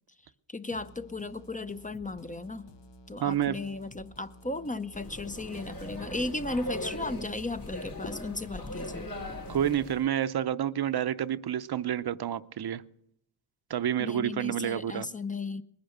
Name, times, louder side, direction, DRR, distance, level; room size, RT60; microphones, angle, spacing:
voice 1, 0.5-2.7 3.1-9.1 14.0-15.6, left 2 dB, 20° left, 0.6 m, -35 dB
sound 1, 0.7-8.1, left 1 dB, 90° left, 1.4 m, -53 dB
voice 2, 3.2-3.6 9.5-12.8 13.7-15.1, right 10 dB, 65° right, 0.7 m, -29 dB
sound 2, 4.9-10.1, left 1 dB, 55° left, 4.2 m, -39 dB
20.5 x 10.5 x 6.6 m
wide cardioid pair, 105°, 42 cm